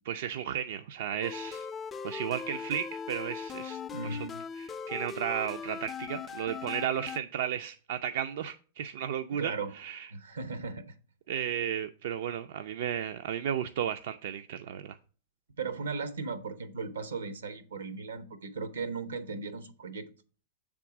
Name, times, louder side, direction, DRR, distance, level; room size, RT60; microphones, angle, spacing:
voice 1, 0.1-1.7 2.0-4.2 4.6-10.1 11.3-15.0, right 9 dB, 65° right, 0.4 m, -34 dB
sound 1, 1.2-7.2, left 6 dB, 20° left, 0.3 m, -39 dB
voice 2, 3.9-4.4 9.3-9.7 10.1-11.0 15.6-20.1, right 4 dB, 85° right, 0.9 m, -37 dB
7.1 x 3.6 x 5.8 m
hypercardioid pair, 110°, 0 cm